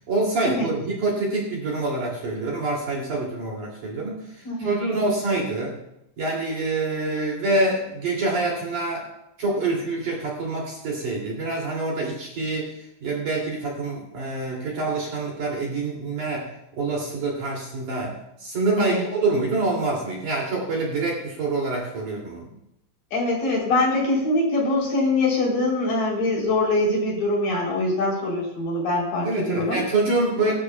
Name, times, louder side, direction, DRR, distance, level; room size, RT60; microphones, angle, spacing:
voice 1, 0.1-5.8 6.2-9.1 9.4-12.7 13.0-22.5 29.2-30.5, right 2 dB, 45° right, -2 dB, 3.7 m, -26 dB
voice 2, 23.1-29.8 30.4-30.5, left 2 dB, 50° left, -2 dB, 4.8 m, -23 dB
23.5 x 12.5 x 2.3 m, 0.81 s
omnidirectional pair, 5.4 m